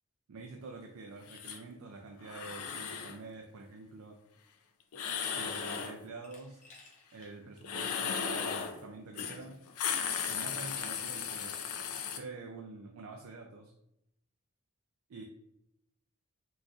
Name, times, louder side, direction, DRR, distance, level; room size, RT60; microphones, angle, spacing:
voice 1, 0.3-4.2 5.3-6.6 7.1-9.6 10.3-11.6 12.1-13.7 15.1-15.2, right 3 dB, 75° right, 1 dB, 0.4 m, -47 dB
sound 1, 1.3-1.6 2.2-3.2 4.9-6.0 7.6-8.8 9.2-9.4 9.7-12.2, left 7 dB, 80° left, 0.4 m, -36 dB
Glass, 6.2-7.3 7.7-7.8 9.0-9.1 9.5-9.9 10.7-11.5, left 3 dB, 35° left, 0.7 m, -58 dB
3.8 x 2.5 x 2.3 m, 0.82 s
head